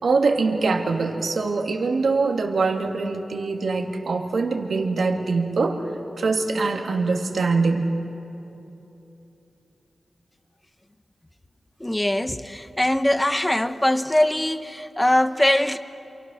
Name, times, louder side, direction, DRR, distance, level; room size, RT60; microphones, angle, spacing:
voice 1, 0.0-5.8 6.2-7.9, right 4 dB, 75° right, 2.3 m, -23 dB
voice 2, 11.8-15.8, left 1 dB, 10° left, 0.9 m, -22 dB
28.5 x 27.5 x 6.4 m
wide cardioid pair, 120°, 0 cm